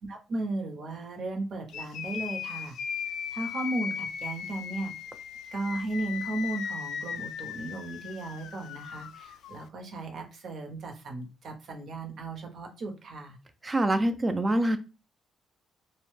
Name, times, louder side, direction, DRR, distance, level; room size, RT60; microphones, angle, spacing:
voice 1, 0.1-2.8 3.3-4.9 5.5-13.4, right 2 dB, 65° right, 0.8 m, -35 dB
sound 1, 1.7-9.6, left 8 dB, 75° left, 0.3 m, -37 dB
voice 2, 13.6-14.8, right 1 dB, 25° right, 0.4 m, -25 dB
2.7 x 2.1 x 3.1 m
cardioid pair, 90°, 0 cm